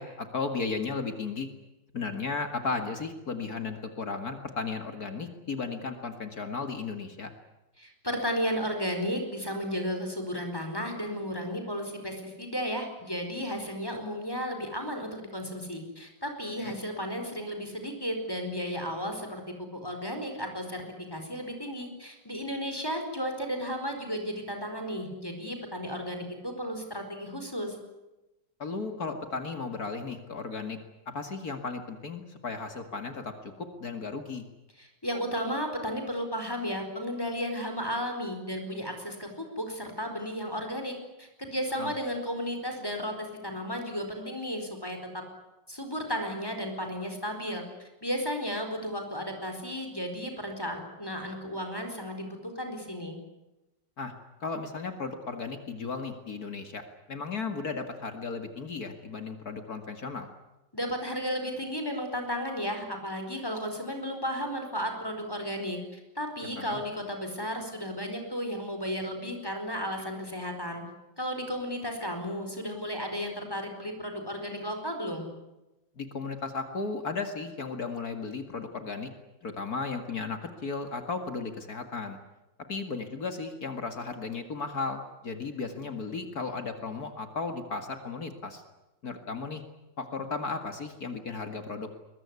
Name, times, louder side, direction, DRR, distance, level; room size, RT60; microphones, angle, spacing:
voice 1, 0.0-1.5 1.9-7.3 16.6-16.7 28.6-30.8 31.1-34.4 41.8-41.9 54.0-54.1 54.4-56.8 57.1-60.3 66.6-66.8 76.0-79.1 79.4-82.2 82.7-88.6 89.0-89.6 90.0-91.9, left 4 dB, 55° left, 7 dB, 2.5 m, -35 dB
voice 2, 7.8-20.8 21.1-27.7 34.8-40.9 41.2-45.2 45.7-53.2 60.7-70.8 71.2-75.3, equal, 10° left, 4 dB, 4.6 m, -34 dB
22.0 x 21.5 x 9.7 m, 1.0 s
omnidirectional pair, 2.0 m